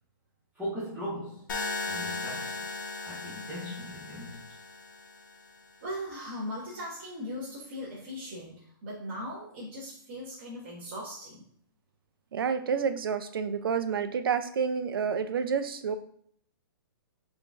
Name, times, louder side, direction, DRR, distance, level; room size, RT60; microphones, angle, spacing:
voice 1, 0.5-1.5 1.9-2.7 3.0-4.5, equal, 5° right, -10 dB, 0.4 m, -39 dB
sound 1, 1.5-5.5, left 3 dB, 60° left, 0.8 m, -37 dB
voice 2, 5.8-11.4, equal, 25° right, -10 dB, 1.0 m, -39 dB
voice 3, 12.3-16.0, right 6 dB, 75° right, 10 dB, 0.4 m, -29 dB
3.8 x 2.5 x 3.3 m, 0.63 s
hypercardioid pair, 180°, 12 cm